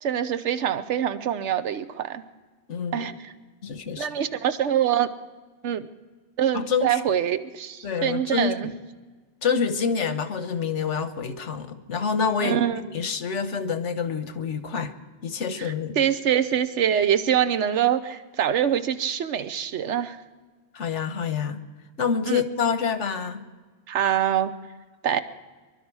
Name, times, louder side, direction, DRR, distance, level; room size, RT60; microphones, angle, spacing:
voice 1, 0.0-2.2 2.9-3.3 4.0-5.1 5.6-5.9 6.4-8.7 12.4-12.8 15.6-20.2 22.3-22.4 23.9-24.5 25.0-25.2, right 9 dB, 80° right, 12 dB, 1.1 m, -24 dB
voice 2, 2.7-3.1 3.6-4.1 6.5-7.0 7.8-8.7 9.4-14.9 15.2-16.0 20.7-21.6 22.0-23.4, left 6 dB, 90° left, 9 dB, 1.3 m, -27 dB
24.5 x 12.0 x 4.7 m, 1.4 s
omnidirectional pair, 1.2 m